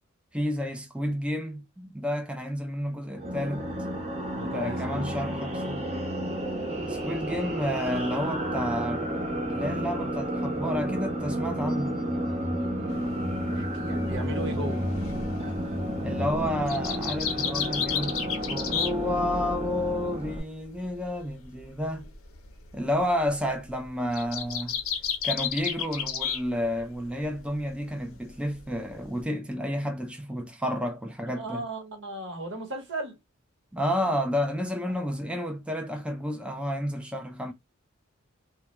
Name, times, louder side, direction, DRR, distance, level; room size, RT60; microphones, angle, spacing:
voice 1, 0.3-3.7 4.5-5.9 6.9-12.0 16.0-18.2 18.5-22.1 22.7-24.8 25.2-31.6 33.7-37.5, equal, 5° right, 0.4 m, -31 dB
sound 1, 3.1-20.4, equal, 30° right, 0.7 m, -31 dB
voice 2, 4.3-5.2 5.5-5.7 12.6-14.8 31.3-33.2 34.9-35.1, right 1 dB, 60° right, 0.9 m, -37 dB
sound 2, 12.9-19.6 19.9-26.4 26.7-27.4 27.8-29.2, left 7 dB, 85° left, 0.6 m, -33 dB
2.2 x 2.1 x 2.9 m
head